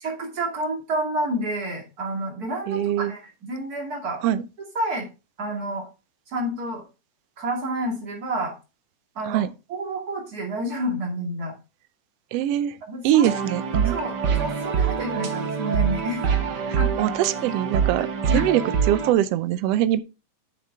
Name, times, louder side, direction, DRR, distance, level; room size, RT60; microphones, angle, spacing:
voice 1, 0.0-4.2 4.6-5.1 5.4-5.9 6.3-6.8 7.4-8.5 9.1-11.5 12.9-13.4 13.9-16.2 16.8-16.9 18.3-18.4, right 1 dB, 30° right, 2.7 m, -29 dB
voice 2, 2.7-3.1 4.2-4.4 9.2-9.5 12.3-12.8 13.0-14.0 16.7-18.1 18.3-20.0, right 12 dB, 80° right, 1.5 m, -23 dB
sound 1, 13.2-19.1, right 7 dB, 55° right, 1.2 m, -25 dB
8.8 x 7.0 x 3.6 m
omnidirectional pair, 3.4 m